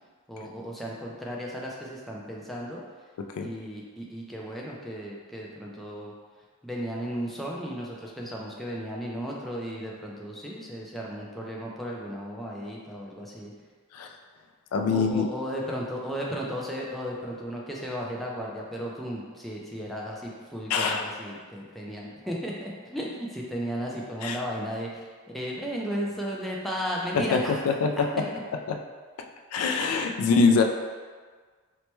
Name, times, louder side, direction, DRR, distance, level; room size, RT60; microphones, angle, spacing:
voice 1, 0.3-2.8 3.4-6.1 6.6-13.5 14.9-25.1 25.3-27.5 28.0-28.1 28.3-28.4, equal, ahead, -4 dB, 0.3 m, -35 dB
voice 2, 14.7-15.2 20.7-21.0 24.2-24.4 27.1-27.4 27.7-28.2 28.7-28.8 29.5-30.6, left 4 dB, 85° left, 5 dB, 0.3 m, -23 dB
4.3 x 2.1 x 3.0 m, 1.5 s
head